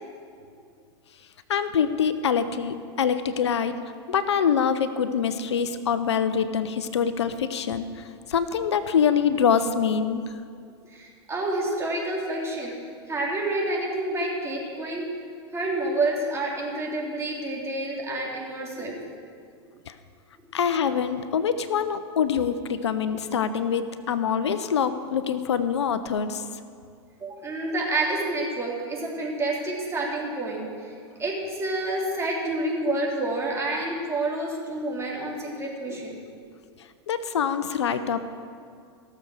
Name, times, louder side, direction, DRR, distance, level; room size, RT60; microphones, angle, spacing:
voice 1, 1.5-3.7 4.1-10.2 19.9-20.0 20.5-26.4 37.1-38.2, left 7 dB, 90° left, 12 dB, 0.7 m, -25 dB
voice 2, 10.9-12.7 13.1-15.1 15.5-19.0 27.2-30.9 31.2-36.2, right 2 dB, 20° right, -3 dB, 3.6 m, -28 dB
17.0 x 6.9 x 6.4 m, 2.3 s
hypercardioid pair, 105°, 14 cm